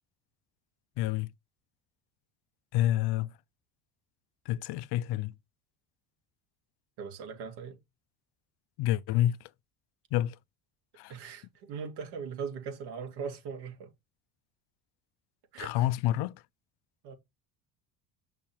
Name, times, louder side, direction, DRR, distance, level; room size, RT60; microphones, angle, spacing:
voice 1, 1.0-1.3 2.7-3.3 4.5-5.3 8.8-9.4 10.1-10.4 11.0-11.1 15.6-16.3, left 13 dB, 65° left, 0.5 m, -28 dB
voice 2, 7.0-7.8 11.1-13.9 15.5-15.9 17.0-17.1, right 6 dB, 70° right, 2.5 m, -39 dB
6.9 x 5.9 x 3.0 m
supercardioid pair, 95°, 41 cm